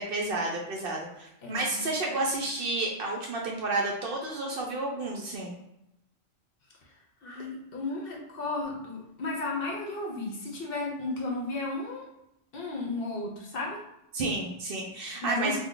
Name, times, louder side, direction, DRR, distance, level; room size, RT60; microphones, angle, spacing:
voice 1, 0.0-5.5 14.1-15.6, right 2 dB, 60° right, -1 dB, 0.7 m, -31 dB
voice 2, 1.4-1.9 7.2-12.0 12.5-13.8 15.2-15.6, left 2 dB, 60° left, -1 dB, 0.8 m, -34 dB
2.6 x 2.1 x 3.7 m, 0.84 s
omnidirectional pair, 1.2 m